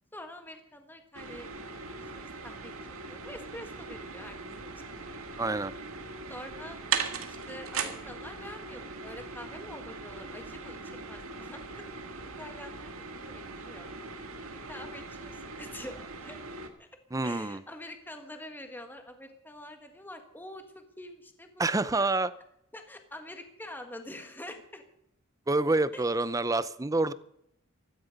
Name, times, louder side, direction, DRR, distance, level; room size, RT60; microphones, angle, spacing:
voice 1, 0.1-5.2 6.3-6.8 7.2-11.8 12.4-13.9 14.4-16.4 16.8-16.9 17.2-22.1 22.7-24.8 25.9-26.0, left 1 dB, 10° left, 5 dB, 1.6 m, -46 dB
sound 1, 1.1-16.7, right 5 dB, 85° right, 2.0 m, -39 dB
voice 2, 5.4-5.7 17.1-17.6 21.6-22.3 25.5-27.1, right 2 dB, 15° right, 15 dB, 0.6 m, -27 dB
16.5 x 14.0 x 5.3 m, 0.74 s
head